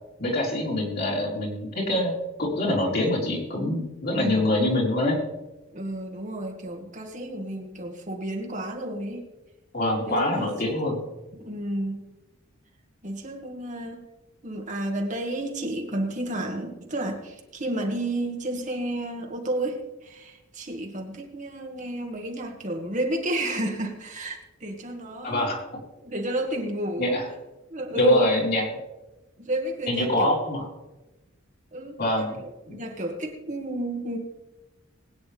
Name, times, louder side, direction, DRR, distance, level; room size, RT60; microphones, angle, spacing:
voice 1, 0.2-2.1 2.4-5.2 9.7-11.0 25.2-25.6 27.0-27.3 27.9-28.6 29.9-30.7 32.0-32.4 32.7-32.8, left 1 dB, 50° left, -3 dB, 3.9 m, -24 dB
voice 2, 4.1-4.4 5.7-9.3 10.0-10.7 11.3-12.0 13.0-14.0 14.4-25.5 26.0-27.1 27.7-28.3 29.4-30.3 31.7-34.2, right 1 dB, 35° right, 2 dB, 1.7 m, -31 dB
21.0 x 9.4 x 3.4 m, 1.1 s
head